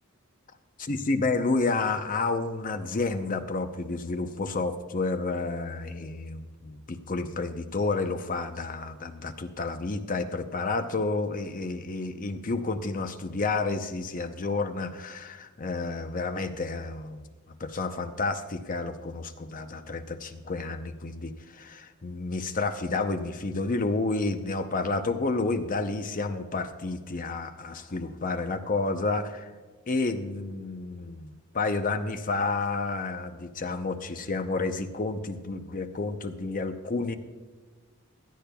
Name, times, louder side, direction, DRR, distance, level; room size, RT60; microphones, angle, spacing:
voice 1, 0.8-17.3 17.6-29.5 29.9-37.1, left 3 dB, 40° left, 8 dB, 0.7 m, -30 dB
16.5 x 12.0 x 2.3 m, 1.4 s
head